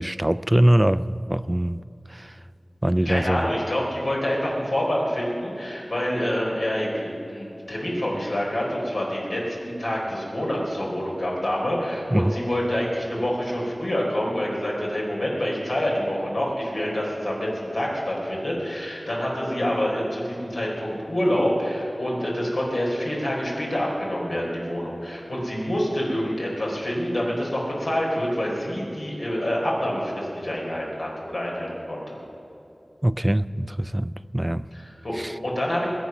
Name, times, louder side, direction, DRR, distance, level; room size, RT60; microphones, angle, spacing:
voice 1, 0.0-1.8 2.1-2.4 2.8-3.5 12.1-12.4 33.0-34.7 35.1-35.4, right 1 dB, 20° right, 16 dB, 0.3 m, -22 dB
voice 2, 3.0-32.2 34.7-35.2 35.4-35.9, equal, 90° left, -4 dB, 4.3 m, -27 dB
21.5 x 8.3 x 6.0 m, 2.8 s
wide cardioid pair, 50°, 0 cm